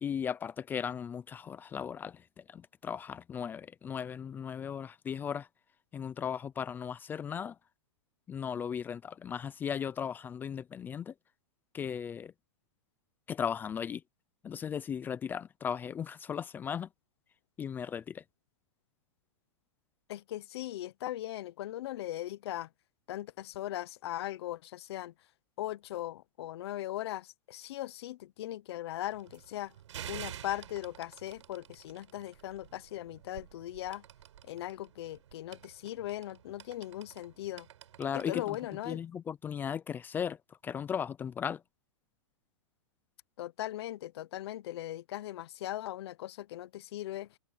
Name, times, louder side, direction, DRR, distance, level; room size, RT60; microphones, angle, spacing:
voice 1, 0.0-2.2 2.5-5.5 5.9-7.5 8.3-11.1 11.7-12.3 13.3-14.0 14.4-16.9 17.6-18.2 38.0-38.6 38.9-40.4 40.6-41.6, left 7 dB, 10° left, 0.5 m, -36 dB
voice 2, 20.1-22.7 23.1-25.1 25.6-29.7 30.1-34.0 34.4-37.7 38.1-39.0 43.4-47.4, left 14 dB, 55° left, 0.9 m, -39 dB
sound 1, 29.0-39.1, right 11 dB, 70° right, 7.9 m, -50 dB
hypercardioid pair, 150°, 16 cm